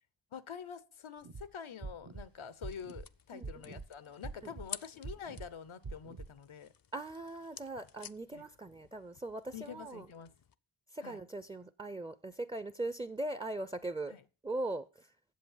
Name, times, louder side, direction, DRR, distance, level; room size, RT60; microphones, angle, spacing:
voice 1, 0.3-6.7 8.3-8.5 9.5-10.3 11.0-11.2 14.1-14.2, left 7 dB, 85° left, 0.8 m, -47 dB
sound 1, 1.2-1.4 1.8-2.2 2.6-3.0 3.4-3.9 4.2-4.7 5.0-5.5 5.8-6.3, right 4 dB, 65° right, 1.3 m, -44 dB
sound 2, 2.1-10.5, left 8 dB, 50° left, 0.6 m, -53 dB
voice 2, 3.3-3.8 4.4-4.5 6.9-10.1 10.9-14.2 14.4-15.1, right 2 dB, 10° right, 0.5 m, -40 dB
8.6 x 7.3 x 7.2 m
cardioid pair, 40°, 47 cm